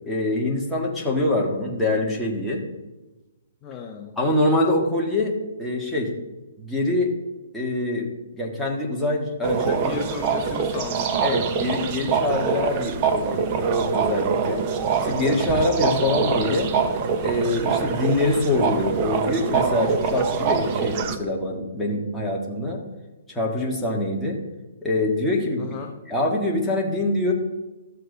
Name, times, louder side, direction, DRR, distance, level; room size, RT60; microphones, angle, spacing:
voice 1, 0.1-2.6 4.2-6.1 6.6-7.2 7.5-10.0 11.2-14.7 15.0-16.7 17.2-22.8 23.3-24.4 24.8-25.7 26.1-27.3, left 1 dB, 5° left, -3 dB, 1.7 m, -24 dB
voice 2, 3.6-4.2 9.7-11.3 15.9-16.1 25.6-25.9, left 4 dB, 20° left, 1 dB, 0.9 m, -35 dB
sound 1, 9.4-21.2, right 6 dB, 35° right, 0.9 m, -25 dB
13.0 x 7.7 x 4.0 m, 1.1 s
hypercardioid pair, 150°, 0 cm